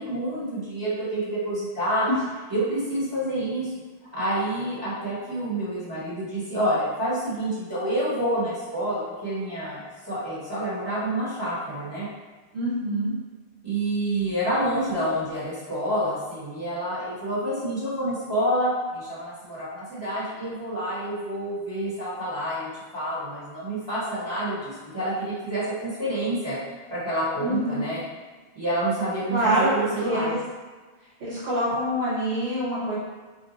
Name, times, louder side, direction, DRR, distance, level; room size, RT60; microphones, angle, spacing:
voice 1, 0.0-2.1 2.5-3.7 4.1-12.1 13.6-26.6 26.9-28.0 28.5-30.3, right 1 dB, 25° right, -12 dB, 1.2 m, -28 dB
voice 2, 12.5-13.1 27.4-27.8 29.3-30.4 31.2-32.9, right 1 dB, 90° right, -10 dB, 1.3 m, -25 dB
2.6 x 2.4 x 3.9 m, 1.3 s
omnidirectional pair, 1.0 m